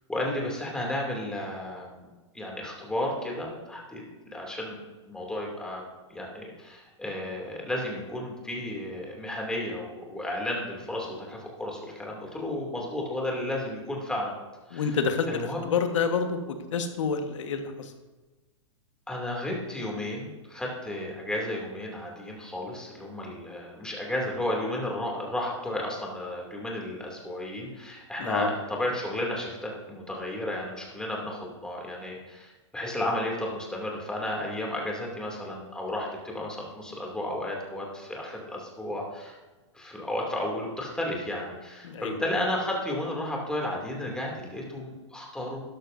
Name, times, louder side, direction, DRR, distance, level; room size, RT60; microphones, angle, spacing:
voice 1, 0.1-4.8 5.1-5.8 6.1-14.3 14.7-15.0 15.3-15.7 19.1-39.4 39.7-45.6, left 1 dB, 5° left, -2 dB, 2.7 m, -33 dB
voice 2, 14.7-17.7 28.2-28.5 41.8-42.1, left 5 dB, 75° left, 6 dB, 1.5 m, -28 dB
12.5 x 11.5 x 2.7 m, 1.2 s
hypercardioid pair, 140°, 16 cm